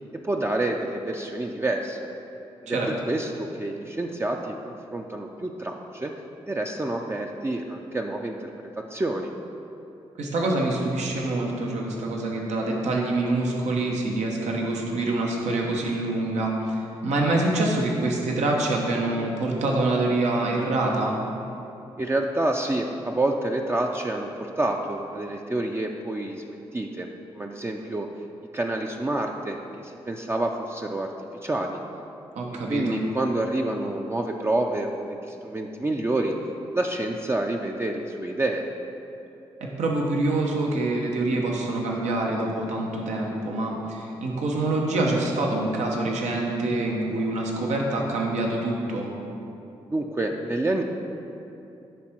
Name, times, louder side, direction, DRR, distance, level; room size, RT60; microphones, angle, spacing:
voice 1, 0.2-2.1 2.6-2.8 3.1-6.1 6.5-8.5 8.7-9.3 22.0-28.1 28.5-31.1 31.4-31.8 32.7-36.3 36.7-38.6 49.9-50.8, right 2 dB, 20° right, 1 dB, 0.5 m, -28 dB
voice 2, 10.2-21.2 32.3-33.0 39.6-49.1, right 2 dB, 80° right, -1 dB, 1.0 m, -26 dB
10.5 x 3.6 x 4.5 m, 2.8 s
supercardioid pair, 45°, 12 cm